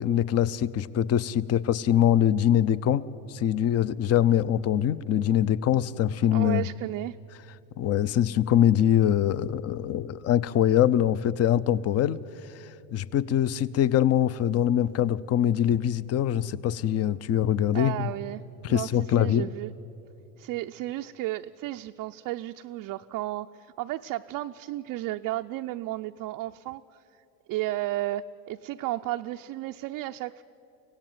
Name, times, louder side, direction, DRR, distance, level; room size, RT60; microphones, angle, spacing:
voice 1, 0.0-3.0 3.3-6.6 7.8-12.2 12.9-18.1 18.6-19.5, left 10 dB, 35° left, 19 dB, 0.6 m, -23 dB
voice 2, 6.3-7.2 17.7-18.4 18.7-19.7 20.4-26.8 27.5-30.4, right 16 dB, 40° right, 5 dB, 0.5 m, -33 dB
24.5 x 16.5 x 9.2 m, 2.8 s
supercardioid pair, 110°, 48 cm